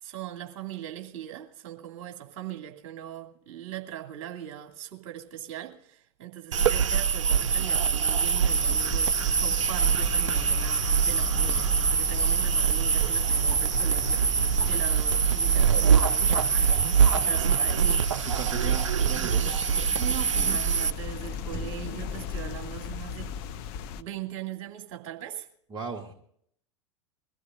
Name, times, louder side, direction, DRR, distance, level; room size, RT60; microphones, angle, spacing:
voice 1, 0.0-18.0 20.0-23.3 24.0-25.5, right 12 dB, 50° right, 2.6 m, -40 dB
sound 1, 6.5-20.9, right 7 dB, 70° right, 0.5 m, -24 dB
sound 2, 8.4-24.0, left 7 dB, 45° left, 0.8 m, -37 dB
voice 2, 18.2-19.7 25.7-26.1, right 4 dB, 25° right, 1.5 m, -37 dB
22.5 x 14.5 x 2.6 m
figure-of-eight pair, 90°, 17 cm